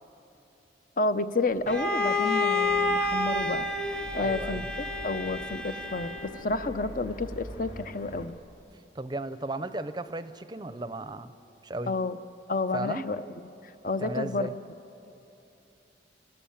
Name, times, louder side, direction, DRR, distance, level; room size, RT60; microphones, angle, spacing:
voice 1, 1.0-8.3 11.9-12.2 12.5-13.2 13.8-14.5, left 3 dB, 45° left, 12 dB, 0.7 m, -30 dB
Bowed string instrument, 1.7-6.5, left 2 dB, 5° left, 0.9 m, -29 dB
sound 1, 2.6-8.3, equal, 85° left, 3.0 m, -44 dB
voice 2, 4.1-4.7 8.9-11.3 11.6-11.9 12.7-13.0 14.0-14.5, right 2 dB, 25° right, 12 dB, 0.6 m, -35 dB
29.5 x 13.0 x 8.7 m, 3.0 s
head